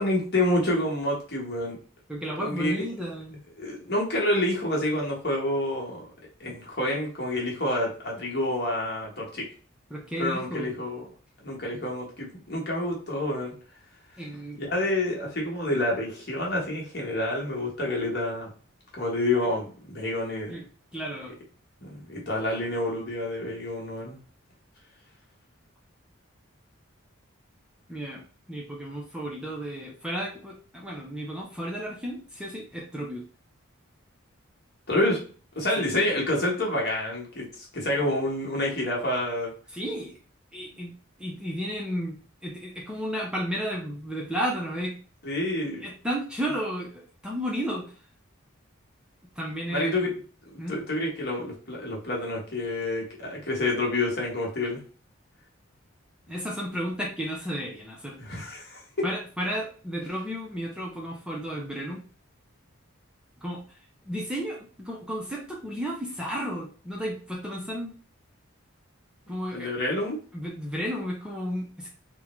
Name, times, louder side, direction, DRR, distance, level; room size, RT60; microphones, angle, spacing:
voice 1, 0.0-1.8 2.4-2.8 3.6-6.1 6.4-9.5 10.2-11.1 11.4-13.5 14.6-18.5 18.9-20.6 21.8-24.2 34.9-35.2 35.5-39.5 45.2-45.8 49.7-50.1 50.5-54.8 58.2-59.0 69.5-70.2, left 1 dB, 50° left, -2 dB, 1.2 m, -28 dB
voice 2, 2.1-3.4 9.9-10.7 14.2-14.6 20.5-20.7 20.9-21.3 27.9-28.2 28.5-33.2 35.8-35.9 39.7-40.1 40.5-40.9 41.2-45.0 45.8-47.9 49.4-50.0 50.6-50.8 56.3-58.2 59.0-62.0 63.4-63.6 64.1-68.0 69.3-69.7 70.3-71.9, equal, 5° right, -3 dB, 0.5 m, -33 dB
3.6 x 2.2 x 3.0 m, 0.39 s
head